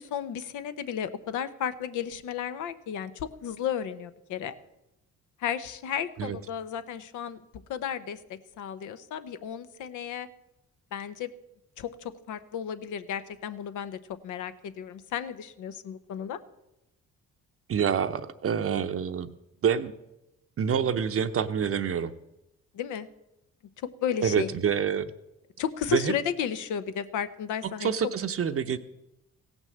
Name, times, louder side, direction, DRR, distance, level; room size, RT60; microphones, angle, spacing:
voice 1, 0.0-4.5 5.4-7.4 7.7-10.3 10.9-11.3 11.8-16.4 22.7-23.1 23.8-24.5 25.6-27.9, left 8 dB, 85° left, 11 dB, 0.9 m, -33 dB
voice 2, 17.7-19.3 19.6-19.9 20.6-22.1 24.2-25.1 25.9-26.1 27.8-28.8, right 7 dB, 50° right, 9 dB, 0.7 m, -27 dB
16.0 x 6.2 x 7.8 m, 0.92 s
cardioid pair, 90°, 30 cm